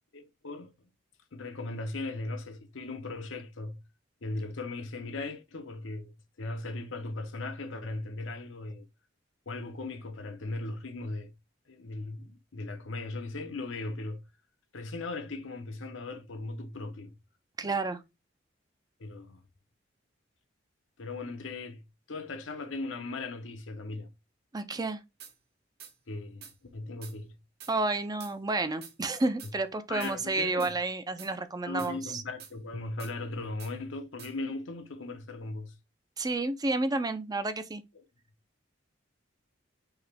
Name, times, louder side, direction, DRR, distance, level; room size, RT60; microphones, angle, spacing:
voice 1, 0.1-0.7 1.3-3.8 4.2-8.9 9.5-11.3 11.7-14.2 14.7-17.1 17.6-17.8 19.0-19.4 21.0-21.8 22.1-24.1 26.1-27.4 29.9-30.7 31.7-35.7 38.0-38.1, left 2 dB, 85° left, 0.9 m, -38 dB
voice 2, 17.6-18.0 24.5-25.0 27.7-32.2 36.2-37.8, right 2 dB, 20° right, 0.4 m, -30 dB
sound 1, 25.2-25.3 25.8-25.9 26.4-26.5 27.0-27.2 27.6-27.7 28.2-28.3 28.8-28.9 29.4-29.5 30.0-30.2 30.6-30.7 31.2-31.3 31.8-31.9 32.4-32.5 33.0-33.1 33.6-33.7 34.2-34.3, right 8 dB, 55° right, 0.8 m, -47 dB
4.8 x 2.9 x 3.4 m
head